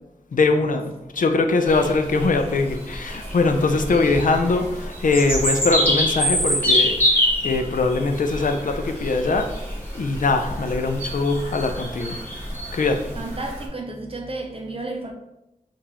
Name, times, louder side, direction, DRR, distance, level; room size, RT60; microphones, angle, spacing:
voice 1, 0.3-9.5 9.9-12.2 12.7-13.1, left 3 dB, 70° left, 0.4 m, -22 dB
sound 1, 1.7-13.6, equal, 15° left, 1.4 m, -26 dB
voice 2, 13.2-15.1, right 2 dB, 40° right, 0.5 m, -32 dB
3.8 x 2.4 x 2.8 m
wide cardioid pair, 60°, 14 cm